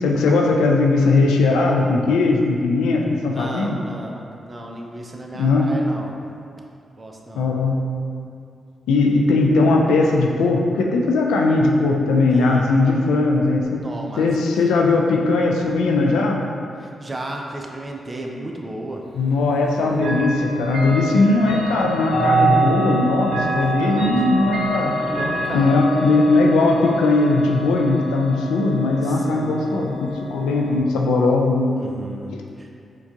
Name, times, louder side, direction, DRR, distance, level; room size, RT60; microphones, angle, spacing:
voice 1, 0.0-3.8 5.3-5.7 7.4-7.8 8.9-13.8 14.2-16.4 19.1-25.0 25.5-31.7 32.3-32.4, left 3 dB, 85° left, 0 dB, 0.3 m, -19 dB
voice 2, 3.3-6.1 7.0-7.5 12.3-12.7 13.7-14.5 16.8-19.4 19.8-20.0 23.6-24.2 25.1-25.8 29.0-29.8 31.8-32.7, right 1 dB, 30° right, 1 dB, 0.5 m, -34 dB
Chime / Clock, 20.0-30.8, right 2 dB, 65° right, 0.9 m, -26 dB
4.5 x 2.3 x 2.8 m, 2.4 s
supercardioid pair, 45°, 0 cm